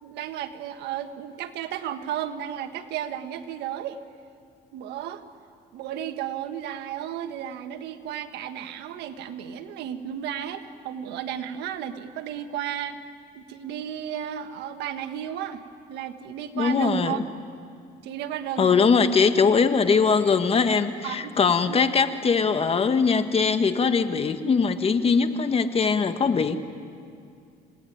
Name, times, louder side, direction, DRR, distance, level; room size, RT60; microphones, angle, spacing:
voice 1, 0.0-4.0 4.7-5.2 5.7-13.0 13.3-15.6 15.9-17.2 18.0-18.7 21.0-21.4 21.7-22.0, right 10 dB, 85° right, 8 dB, 1.5 m, -33 dB
voice 2, 16.5-17.2 18.6-26.6, left 5 dB, 35° left, 9 dB, 1.5 m, -21 dB
29.0 x 18.5 x 9.4 m, 2.3 s
cardioid pair, 110°, 17 cm